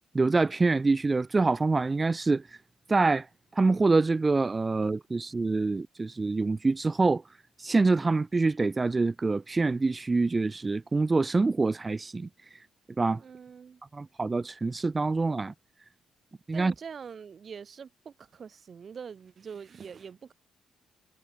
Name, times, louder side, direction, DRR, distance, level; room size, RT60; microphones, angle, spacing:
voice 1, 0.1-2.5 2.9-3.3 3.5-7.2 7.6-12.3 13.0-13.2 13.9-15.5 16.5-16.7, right 3 dB, 25° right, 0.4 m, -25 dB
voice 2, 13.2-13.8 16.5-20.3, right 6 dB, 45° right, 1.4 m, -44 dB
cardioid pair, 90°, 0 cm